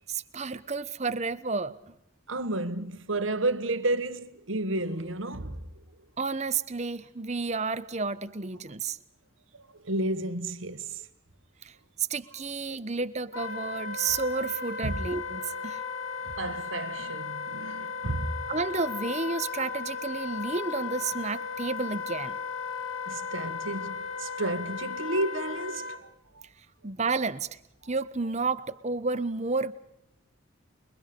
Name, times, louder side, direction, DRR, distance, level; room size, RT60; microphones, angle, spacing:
voice 1, 0.1-1.8 6.2-9.0 11.6-15.8 18.5-22.4 26.8-27.5 27.8-29.7, right 4 dB, 35° right, 1.0 m, -31 dB
voice 2, 2.3-5.7 9.8-11.0 14.8-15.0 16.2-18.5 22.7-22.8 23.0-26.1 26.3-26.4, right 2 dB, 75° right, 1.5 m, -31 dB
Wind instrument woodwind instrument, 13.3-26.0, left 5 dB, 85° left, 2.6 m, -36 dB
29.0 x 23.0 x 5.3 m
head